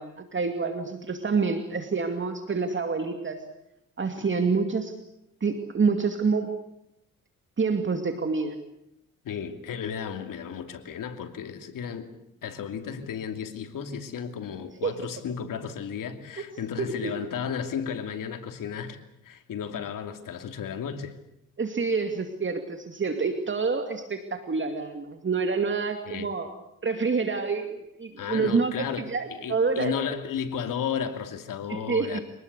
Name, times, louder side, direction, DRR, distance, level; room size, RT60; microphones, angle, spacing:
voice 1, 0.0-3.4 4.0-4.9 5.4-6.5 7.6-8.6 14.8-15.0 16.8-17.1 21.6-26.5 26.8-28.7 29.1-29.9 31.7-32.2, right 4 dB, 35° right, 6 dB, 2.5 m, -27 dB
voice 2, 9.2-12.1 12.4-21.1 26.1-26.3 28.2-32.2, left 7 dB, 75° left, 7 dB, 2.7 m, -34 dB
25.5 x 19.5 x 8.3 m, 0.82 s
cardioid pair, 85°, 33 cm